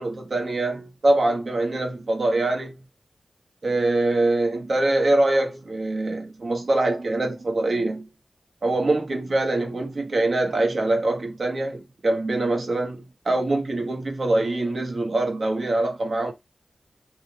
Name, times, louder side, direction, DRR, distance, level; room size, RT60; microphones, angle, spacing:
voice 1, 0.0-2.8 3.6-8.0 8.6-16.3, right 2 dB, 65° right, 1.1 m, -24 dB
3.0 x 2.3 x 3.3 m
wide cardioid pair, 70°, 0 cm